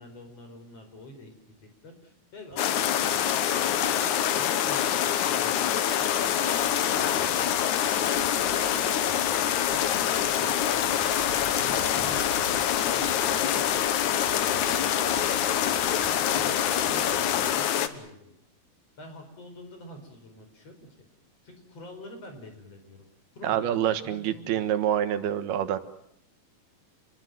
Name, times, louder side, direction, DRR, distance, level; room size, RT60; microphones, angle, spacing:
voice 1, 0.0-7.7 8.0-9.1 9.7-11.2 11.6-15.4 15.7-18.3 19.0-21.1 21.4-23.1 23.3-24.7, left 1 dB, 40° left, 6 dB, 5.7 m, -46 dB
Bird / Insect / Wind, 2.5-17.5, right 3 dB, 50° right, 6.7 m, -48 dB
sound 1, 2.6-17.9, left 10 dB, 65° left, 2.3 m, -25 dB
voice 2, 23.4-25.8, right 10 dB, 80° right, 11 dB, 3.4 m, -26 dB
28.5 x 22.0 x 7.7 m, 0.74 s
omnidirectional pair, 4.4 m